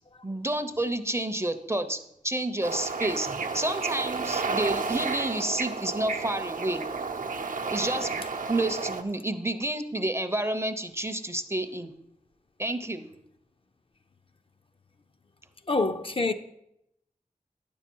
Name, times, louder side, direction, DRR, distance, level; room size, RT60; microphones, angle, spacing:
voice 1, 0.2-6.9 7.7-11.9 12.6-13.1, right 1 dB, 20° right, 0.6 m, -30 dB
Bird / Ocean, 2.6-9.0, right 4 dB, 70° right, 0.7 m, -32 dB
voice 2, 15.7-16.3, left 3 dB, 40° left, 0.5 m, -26 dB
9.6 x 7.1 x 4.5 m
wide cardioid pair, 85°, 14 cm